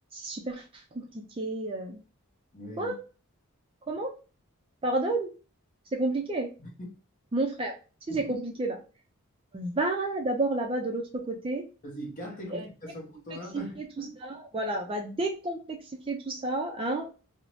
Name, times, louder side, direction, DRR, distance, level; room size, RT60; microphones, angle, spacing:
voice 1, 0.1-2.0 2.8-3.0 3.9-4.1 4.8-5.3 5.9-6.5 7.3-7.8 8.1-8.8 9.5-11.6 12.5-12.7 13.3-13.4 14.0-15.8 16.1-17.1, right 2 dB, 25° right, 0.3 m, -30 dB
voice 2, 2.5-2.9 6.6-6.9 8.1-8.4 11.8-14.2, left 1 dB, 35° left, 0.8 m, -41 dB
2.6 x 2.0 x 3.0 m
head